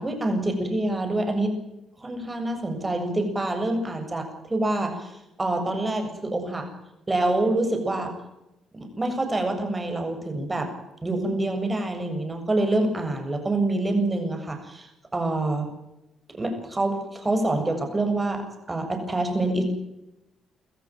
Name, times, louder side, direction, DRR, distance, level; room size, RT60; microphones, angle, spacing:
voice 1, 0.0-1.6 2.0-5.1 5.4-6.7 7.1-8.1 8.7-10.7 11.0-15.7 16.3-19.7, right 2 dB, 20° right, 6 dB, 7.3 m, -26 dB
25.0 x 14.5 x 9.1 m, 0.91 s
cardioid pair, 90°, 0 cm